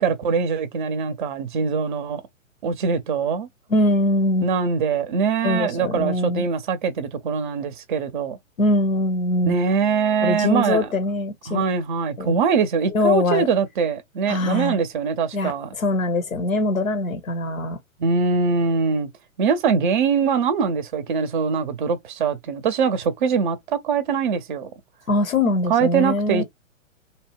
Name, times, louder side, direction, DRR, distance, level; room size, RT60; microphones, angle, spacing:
voice 1, 0.0-2.2 2.6-3.5 4.4-8.4 9.4-10.9 11.5-15.7 18.0-19.1 19.4-24.7 25.7-26.4, right 5 dB, 40° right, 0.6 m, -22 dB
voice 2, 3.7-4.5 5.4-6.5 8.6-9.6 10.2-11.6 12.2-12.4 12.9-13.5 14.3-14.8 15.3-17.8 25.1-26.4, left 1 dB, 80° left, 0.9 m, -22 dB
2.7 x 2.0 x 3.0 m
figure-of-eight pair, 120°, 40 cm